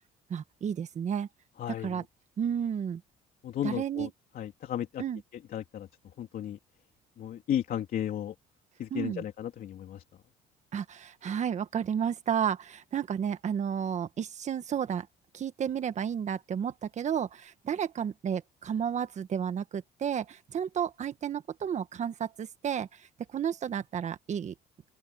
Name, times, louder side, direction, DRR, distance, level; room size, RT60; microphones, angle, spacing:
voice 1, 0.3-1.3 1.7-2.0 2.4-3.0 3.6-4.1 5.0-5.2 8.9-9.2 10.7-15.1 15.3-24.5, right 8 dB, 45° right, 1.5 m, -32 dB
voice 2, 1.6-2.0 3.4-4.1 4.3-5.0 5.5-5.9 6.2-6.6 7.2-8.3 8.8-10.0, left 10 dB, 60° left, 3.4 m, -34 dB
open air
cardioid pair, 110°, 17 cm